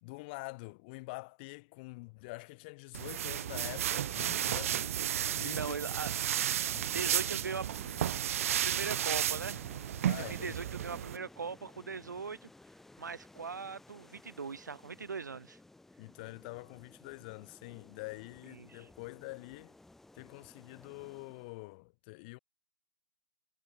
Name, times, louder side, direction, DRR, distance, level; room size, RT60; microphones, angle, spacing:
voice 1, 0.0-4.9 5.3-5.8 6.7-7.1 10.1-10.6 16.0-19.7 20.1-22.4, left 27 dB, 30° left, 1.4 m, -46 dB
sound 1, 2.9-11.2, right 11 dB, 50° right, 0.8 m, -33 dB
sound 2, 3.5-21.7, left 2 dB, 5° left, 1.1 m, -57 dB
voice 2, 4.7-6.1 6.8-7.7 8.6-9.6 10.1-12.5 13.0-15.6 18.5-18.9, right 5 dB, 80° right, 3.3 m, -40 dB
hypercardioid pair, 140°, 10 cm